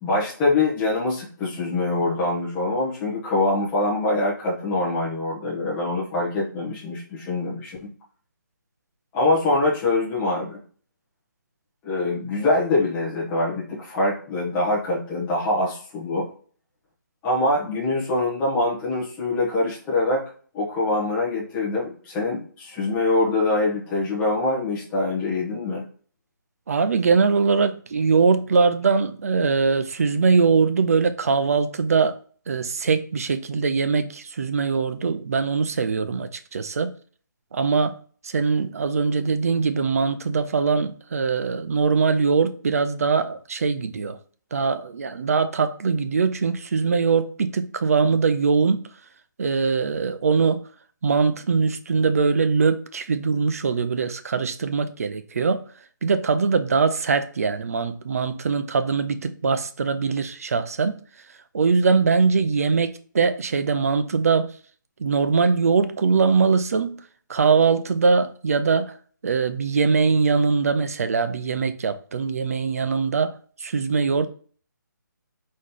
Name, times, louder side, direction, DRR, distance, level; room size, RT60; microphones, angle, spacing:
voice 1, 0.0-7.9 9.1-10.6 11.8-16.3 17.2-20.3 20.5-25.9, left 2 dB, 10° left, 0.9 m, -24 dB
voice 2, 26.7-32.2 32.5-36.9 37.5-44.2 44.5-48.9 49.4-50.6 51.0-55.7 56.0-61.0 61.5-64.6 65.0-69.0 69.2-74.3, right 5 dB, 45° right, 0.5 m, -22 dB
4.2 x 3.1 x 3.7 m
hypercardioid pair, 170°, 11 cm